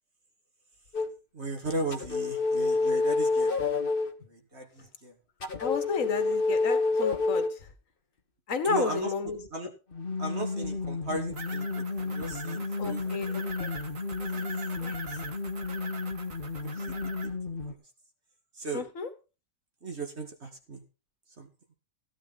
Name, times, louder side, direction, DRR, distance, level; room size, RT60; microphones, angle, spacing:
sound 1, 0.9-1.1 1.9-4.1 5.4-7.6 9.9-17.7, left 3 dB, 35° left, 1.6 m, -30 dB
voice 1, 1.3-3.6 4.2-5.2 8.7-9.1 9.5-9.7 10.2-13.1 14.3-14.5 15.9-16.0 16.6-17.4 17.7-17.8 18.5-18.8 19.8-20.8 21.4-21.5, right 2 dB, 45° right, 4 dB, 2.6 m, -37 dB
voice 2, 5.6-7.7 8.5-9.5 12.8-13.7 14.8-15.2 18.7-19.1, left 5 dB, 60° left, 8 dB, 2.2 m, -32 dB
sound 2, 11.3-17.3, right 4 dB, 60° right, 2.0 m, -43 dB
16.5 x 10.0 x 4.2 m, 0.32 s
omnidirectional pair, 1.6 m